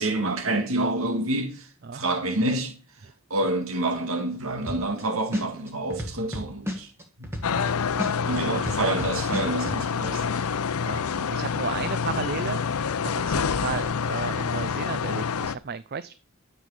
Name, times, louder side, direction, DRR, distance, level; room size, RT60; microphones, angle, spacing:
voice 1, 0.0-1.7 1.9-2.8 3.3-6.9 8.2-10.4, right 2 dB, 75° right, 2.0 m, -27 dB
sound 1, 4.7-5.0 5.3-7.7 8.0-9.8, left 1 dB, 10° right, 2.0 m, -31 dB
sound 2, 7.4-15.6, left 6 dB, 85° left, 0.6 m, -27 dB
voice 2, 8.2-8.7 10.8-12.7 13.0-16.1, right 5 dB, 45° right, 0.5 m, -34 dB
13.0 x 8.3 x 4.9 m
head